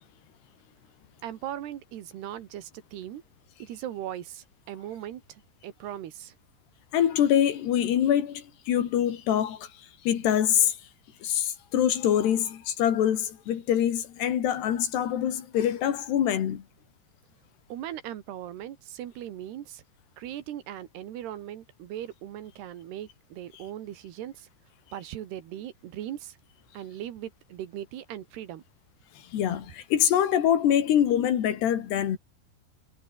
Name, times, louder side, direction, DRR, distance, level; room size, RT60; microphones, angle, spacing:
voice 1, 1.2-3.2 3.6-6.3 17.7-19.8 20.2-24.5 24.9-26.4 26.7-28.6, right 11 dB, 80° right, 3.9 m, -39 dB
voice 2, 6.9-9.7 10.1-10.8 11.2-16.6 29.3-32.2, left 10 dB, 85° left, 4.5 m, -24 dB
omnidirectional pair, 4.7 m